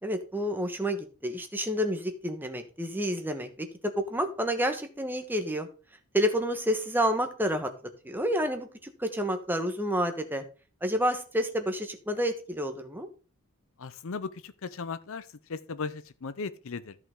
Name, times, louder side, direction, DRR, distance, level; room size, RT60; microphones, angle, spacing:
voice 1, 0.0-5.7 6.1-7.7 8.0-8.7 9.0-10.4 10.8-13.1, equal, 10° right, 1.3 m, -29 dB
voice 2, 13.8-17.0, left 4 dB, 60° left, 0.6 m, -37 dB
13.5 x 5.7 x 3.7 m
head